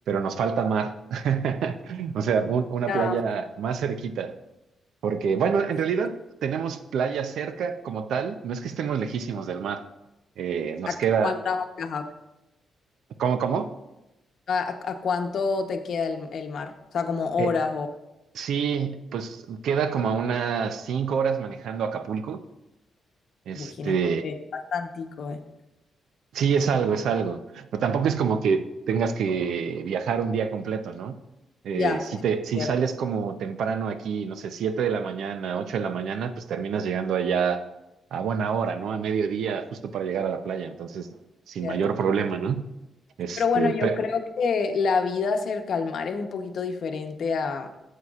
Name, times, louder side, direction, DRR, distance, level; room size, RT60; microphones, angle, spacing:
voice 1, 0.1-4.3 5.0-6.2 6.4-9.8 10.4-11.3 13.2-13.7 17.4-17.5 18.3-22.4 23.5-24.3 26.3-31.2 31.6-37.6 38.1-41.2 41.5-42.7 43.2-44.0, right 6 dB, 80° right, 0.6 m, -27 dB
voice 2, 11.2-12.0 14.5-17.9 23.5-23.9 24.2-25.4 31.7-32.2 32.6-32.7 41.6-41.8 43.4-47.7, left 5 dB, 65° left, 0.9 m, -27 dB
13.5 x 8.3 x 2.5 m
cardioid pair, 95°, 0 cm